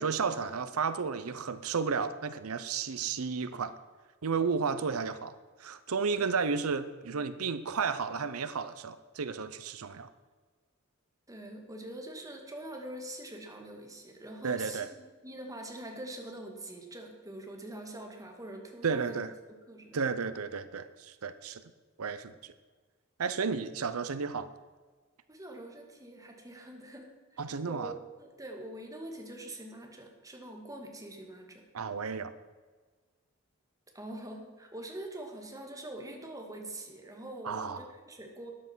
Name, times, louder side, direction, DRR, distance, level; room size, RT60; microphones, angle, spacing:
voice 1, 0.0-3.7 4.2-10.1 14.4-14.9 18.8-19.3 19.9-21.6 22.0-22.5 23.2-24.5 27.4-27.9 31.7-32.3 37.4-37.9, right 5 dB, 90° right, 13 dB, 0.7 m, -33 dB
voice 2, 11.3-19.2 19.5-20.0 25.3-27.4 27.7-27.9 28.2-31.6 33.9-38.5, right 1 dB, 15° right, 2 dB, 2.1 m, -44 dB
13.5 x 9.7 x 6.1 m, 1.4 s
head